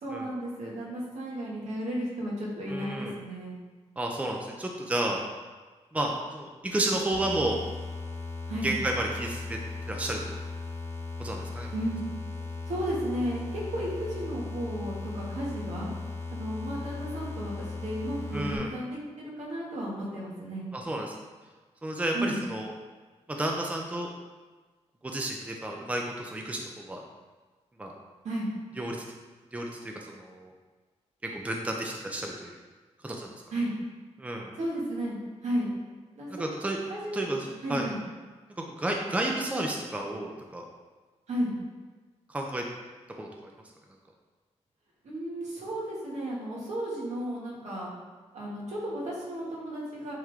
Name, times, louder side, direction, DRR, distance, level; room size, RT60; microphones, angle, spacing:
voice 1, 0.0-3.6 8.5-8.7 11.7-12.0 12.7-15.9 16.3-20.6 22.1-22.4 28.2-28.5 33.5-33.7 34.5-35.7 36.2-36.3 36.9-37.1 37.4-38.0 41.3-41.6 45.0-47.9 48.3-50.1, right 1 dB, 80° right, -5 dB, 2.0 m, -33 dB
voice 2, 2.7-3.2 4.0-5.2 5.9-7.6 8.6-9.6 9.9-10.2 11.2-11.7 18.3-18.7 20.7-21.1 21.8-22.7 23.3-24.1 25.0-27.0 27.8-27.9 28.8-29.0 29.5-29.7 30.1-30.5 31.2-32.5 33.0-33.3 34.2-34.5 36.3-36.8 37.1-37.9 38.8-40.6 42.3-42.6 43.2-43.3, right 1 dB, 10° right, 1 dB, 0.6 m, -31 dB
sound 1, 7.1-18.6, left 3 dB, 20° left, 1.1 m, -37 dB
9.1 x 3.6 x 3.6 m, 1.3 s
wide cardioid pair, 160°, 12 cm